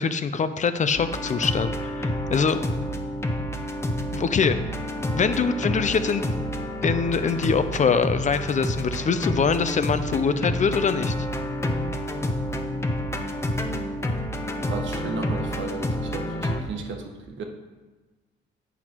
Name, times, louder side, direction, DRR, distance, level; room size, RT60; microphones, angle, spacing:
voice 1, 0.0-2.6 4.1-4.6 5.1-6.3 6.8-11.1, left 5 dB, 40° left, 11 dB, 0.6 m, -23 dB
sound 1, 1.0-16.6, left 1 dB, 15° left, 0.9 m, -29 dB
voice 2, 14.7-17.4, right 4 dB, 70° right, 4 dB, 1.3 m, -35 dB
8.3 x 6.1 x 4.5 m, 1.2 s
cardioid pair, 90°, 20 cm